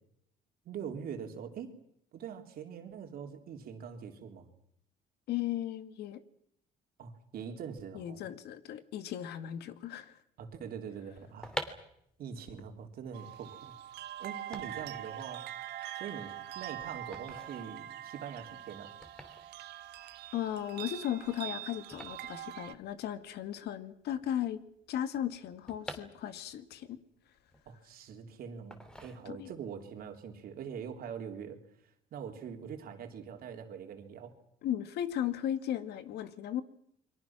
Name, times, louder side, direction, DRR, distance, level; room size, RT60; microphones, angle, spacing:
voice 1, 0.7-1.7 2.1-4.5 7.0-8.2 10.4-11.6 12.2-13.7 14.2-15.4 15.9-18.9 27.7-31.6 32.1-34.4, right 7 dB, 60° right, 5 dB, 3.6 m, -43 dB
voice 2, 5.3-6.2 7.9-10.1 20.3-24.6 24.9-27.0 29.3-29.5 34.6-36.6, left 11 dB, 75° left, 11 dB, 2.0 m, -36 dB
sound 1, 11.2-23.3 23.6-23.7 23.8-26.7 27.1-28.1 28.7-29.7 30.0-30.3, equal, 5° left, 2.9 m, -47 dB
sound 2, 13.1-22.7, right 12 dB, 80° right, 1.4 m, -43 dB
29.5 x 23.5 x 6.1 m, 0.73 s
cardioid pair, 110°, 17 cm